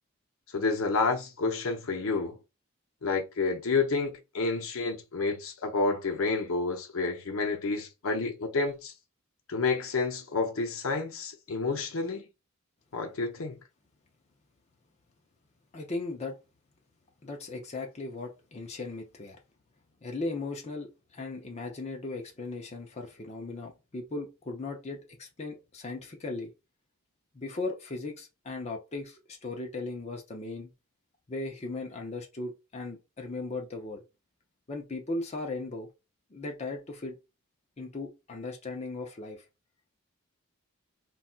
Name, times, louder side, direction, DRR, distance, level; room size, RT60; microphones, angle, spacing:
voice 1, 0.5-2.4 3.0-8.9 9.5-12.2 12.9-13.6, left 4 dB, 70° left, 0.6 m, -29 dB
voice 2, 15.7-16.4 17.2-19.4 20.0-26.5 27.3-30.7 31.3-34.0 34.7-35.9 36.3-37.2 37.8-39.4, left 2 dB, 30° left, 0.5 m, -37 dB
4.1 x 2.2 x 2.4 m
head